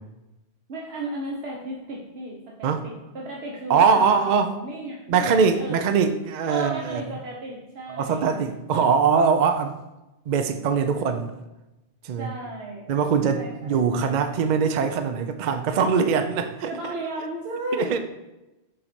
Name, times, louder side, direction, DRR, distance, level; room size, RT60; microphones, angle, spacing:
voice 1, 0.7-5.9 6.5-8.3 8.7-8.8 12.2-12.9 13.4-13.8 16.7-18.0, right 1 dB, 75° right, -2 dB, 1.1 m, -34 dB
voice 2, 3.7-4.6 5.1-7.0 8.0-9.7 10.3-11.3 12.0-12.3 12.9-16.7 17.8-18.0, right 6 dB, 55° right, 7 dB, 0.6 m, -22 dB
5.6 x 4.1 x 5.1 m, 0.98 s
omnidirectional pair, 1.1 m